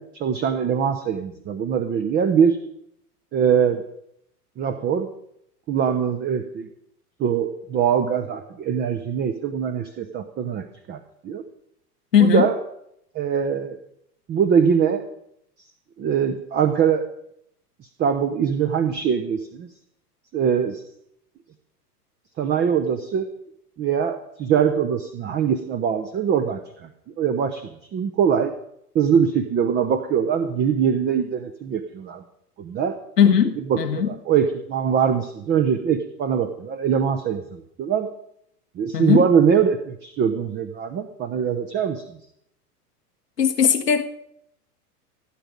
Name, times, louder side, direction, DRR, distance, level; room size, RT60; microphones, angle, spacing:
voice 1, 0.0-2.6 3.3-3.8 4.6-5.1 5.7-6.7 7.2-11.0 11.2-11.4 12.2-12.6 13.1-13.8 14.3-15.0 16.0-17.0 18.0-19.7 20.3-20.8 22.4-23.3 23.8-26.9 27.2-28.5 28.9-32.2 32.6-33.0 33.7-38.1 38.8-42.0, right 7 dB, 20° right, 8 dB, 0.9 m, -22 dB
voice 2, 12.1-12.5 33.2-34.1 38.9-39.3 43.4-44.0, left 8 dB, 80° left, 4 dB, 1.2 m, -18 dB
16.0 x 9.1 x 5.2 m, 0.75 s
figure-of-eight pair, 90°, 47 cm